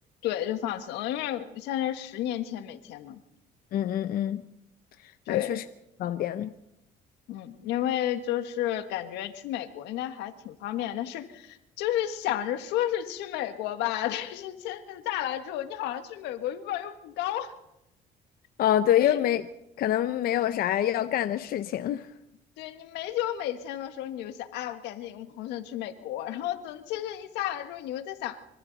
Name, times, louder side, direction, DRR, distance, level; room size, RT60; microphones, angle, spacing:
voice 1, 0.2-3.2 5.3-5.5 7.3-17.5 19.0-19.2 22.6-28.4, left 12 dB, 90° left, 1.7 m, -32 dB
voice 2, 3.7-4.4 5.3-5.6 6.0-6.5 18.6-19.4 19.8-22.1, left 11 dB, 65° left, 0.8 m, -25 dB
25.5 x 25.0 x 4.1 m
cardioid pair, 110°, 17 cm